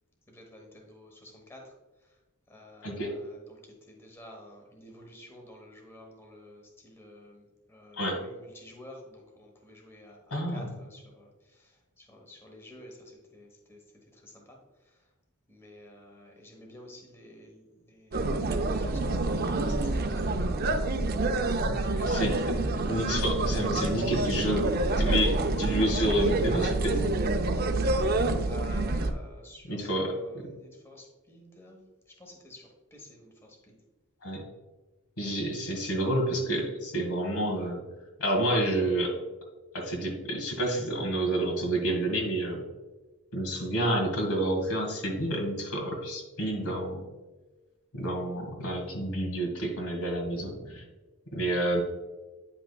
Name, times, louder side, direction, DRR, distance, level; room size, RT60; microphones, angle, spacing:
voice 1, 0.3-1.7 2.0-2.2 2.5-13.8 14.1-14.6 14.8-15.0 15.5-21.0 21.3-21.5 28.4-31.9 32.2-33.8 50.3-50.8, left 1 dB, 10° left, 0 dB, 1.0 m, -51 dB
voice 2, 2.8-3.1 8.0-8.2 10.3-10.7 21.7-22.3 22.9-24.7 25.0-27.1 29.7-30.5 34.2-34.4 35.2-37.8 38.2-39.1 39.7-42.6 43.3-47.1 47.9-50.5 51.3-51.8, right 1 dB, 75° left, 1 dB, 1.9 m, -29 dB
sound 1, 18.1-29.1, right 2 dB, 45° right, 0.5 m, -27 dB
9.1 x 5.8 x 2.3 m, 1.2 s
head